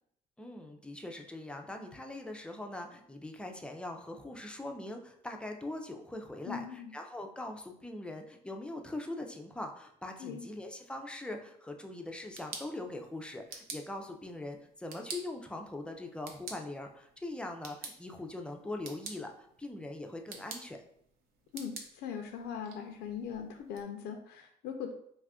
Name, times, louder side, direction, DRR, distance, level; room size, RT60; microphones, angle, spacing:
voice 1, 0.4-20.8, left 2 dB, 5° left, 3 dB, 0.4 m, -42 dB
voice 2, 6.4-6.9 10.2-10.4 21.5-24.9, left 7 dB, 80° left, 4 dB, 0.4 m, -40 dB
sound 1, 12.1-23.8, right 4 dB, 65° right, 0.6 m, -49 dB
2.7 x 2.4 x 3.5 m, 0.69 s
cardioid pair, 110°, 17 cm